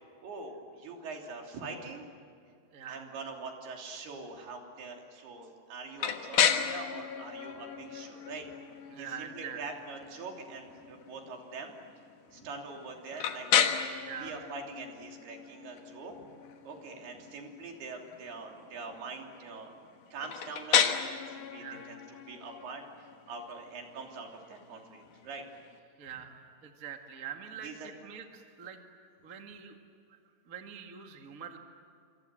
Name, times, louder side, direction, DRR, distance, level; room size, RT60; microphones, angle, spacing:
voice 1, 0.2-2.0 2.9-8.5 9.0-11.7 12.3-13.5 14.2-16.2 16.6-19.8 20.1-22.8 23.3-25.4 27.6-27.9, right 4 dB, 75° right, 2 dB, 5.2 m, -43 dB
voice 2, 2.7-3.0 8.9-9.6 14.0-14.5 21.6-21.9 26.0-28.8 29.2-29.8 30.1-30.2 30.5-31.6, right 8 dB, 30° right, 4 dB, 1.7 m, -44 dB
sound 1, 6.0-25.8, left 8 dB, 60° left, 2.7 m, -34 dB
27.5 x 26.5 x 7.8 m, 2.5 s
omnidirectional pair, 4.6 m